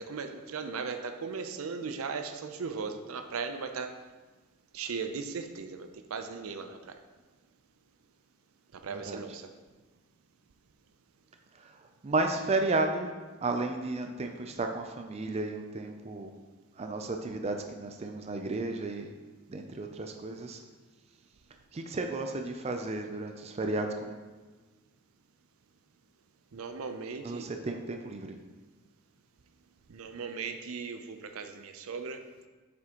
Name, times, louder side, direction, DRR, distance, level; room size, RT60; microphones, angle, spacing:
voice 1, 0.0-4.0 4.7-7.0 8.7-9.5 26.5-27.4 29.9-32.2, right 5 dB, 75° right, 8 dB, 0.5 m, -37 dB
voice 2, 8.9-9.2 11.6-11.7 12.0-13.1 13.4-16.3 16.8-19.1 19.5-20.6 21.7-24.2 27.2-28.4, right 2 dB, 30° right, 4 dB, 0.4 m, -33 dB
7.6 x 6.1 x 3.0 m, 1.3 s
head